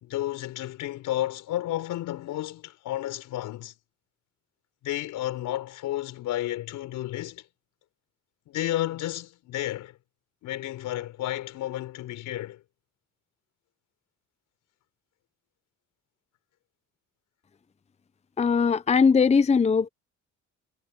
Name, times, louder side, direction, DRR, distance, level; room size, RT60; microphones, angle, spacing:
voice 1, 0.0-3.7 4.8-7.4 8.5-10.0 10.4-12.6, left 14 dB, 90° left, 4.5 m, -32 dB
voice 2, 18.4-19.9, left 5 dB, 20° left, 0.6 m, -20 dB
cardioid pair, 90°, 30 cm